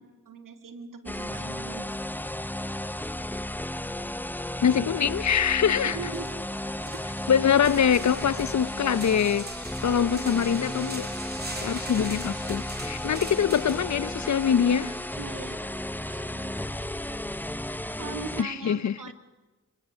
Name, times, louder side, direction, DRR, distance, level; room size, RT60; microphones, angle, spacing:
voice 1, 0.3-1.9 5.8-6.3 6.8-7.0 15.2-15.8 16.0-16.7 18.0-19.1, right 5 dB, 85° right, 1.9 m, -40 dB
sound 1, 1.1-18.4, left 1 dB, 5° left, 0.6 m, -34 dB
voice 2, 4.6-6.0 7.3-9.5 9.8-11.1 11.6-14.9 18.4-18.9, left 8 dB, 60° left, 0.7 m, -24 dB
sound 2, 5.6-5.7 6.1-15.6, right 2 dB, 30° right, 3.5 m, -43 dB
25.5 x 16.0 x 6.3 m
cardioid pair, 40°, 31 cm